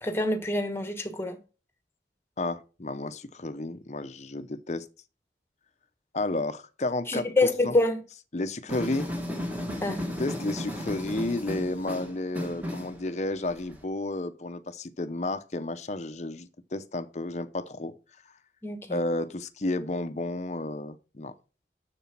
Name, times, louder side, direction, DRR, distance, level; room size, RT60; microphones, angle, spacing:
voice 1, 0.0-1.4 7.1-8.0 9.8-10.0 18.6-19.0, left 2 dB, 15° left, 1.3 m, -26 dB
voice 2, 2.4-4.9 6.1-7.3 7.6-7.7 8.3-9.1 10.2-17.9 18.9-21.3, left 2 dB, 40° left, 0.7 m, -32 dB
Fez-medina gnawa, 8.7-13.8, equal, 10° right, 1.6 m, -35 dB
7.1 x 6.8 x 5.8 m
head